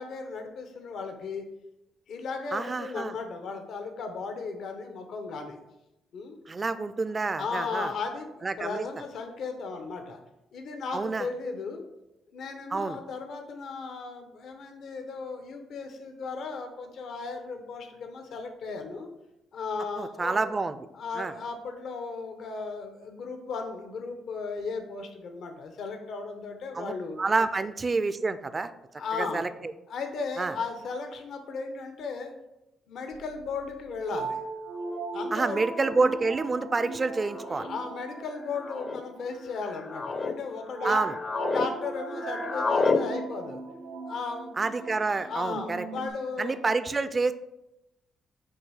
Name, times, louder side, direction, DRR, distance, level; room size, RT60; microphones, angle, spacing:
voice 1, 0.0-1.4 2.1-5.6 6.1-6.4 7.4-10.2 10.5-11.8 12.3-19.1 19.5-20.5 20.9-27.2 29.0-29.5 29.9-32.3 32.9-34.4 35.1-35.6 37.5-41.0 41.4-43.6 44.1-46.6, left 4 dB, 70° left, 5 dB, 0.8 m, -36 dB
voice 2, 2.5-3.1 6.5-7.9 8.4-8.9 10.9-11.3 12.7-13.0 20.0-20.8 21.2-21.3 26.7-26.9 27.2-28.7 29.2-29.5 30.4-30.5 35.3-37.7 40.8-41.2 44.6-45.9 46.4-47.3, right 3 dB, 30° right, 12 dB, 0.4 m, -28 dB
sound 1, 33.1-46.1, right 4 dB, 90° right, 0.7 m, -38 dB
sound 2, 35.0-35.1 36.1-36.4 37.3-37.7 38.5-39.0 39.6-40.3 40.8-41.7 41.9-43.0, left 4 dB, 40° left, 0.6 m, -29 dB
6.4 x 2.7 x 5.6 m, 0.90 s
cardioid pair, 90°, 0 cm